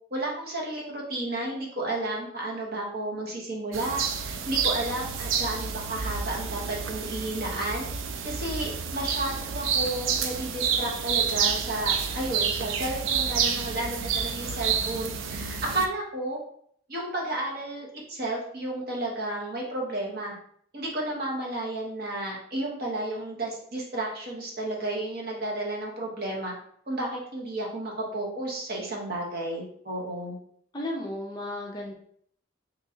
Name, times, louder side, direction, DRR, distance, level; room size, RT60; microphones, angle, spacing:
voice 1, 0.1-7.9 8.2-16.4 16.9-20.4 20.7-26.5 26.9-30.4, right 1 dB, 50° right, -2 dB, 0.9 m, -32 dB
sound 1, 3.7-15.9, right 6 dB, 75° right, 0.4 m, -29 dB
voice 2, 30.7-31.9, left 1 dB, 20° left, -1 dB, 0.5 m, -34 dB
3.0 x 2.7 x 3.7 m, 0.64 s
head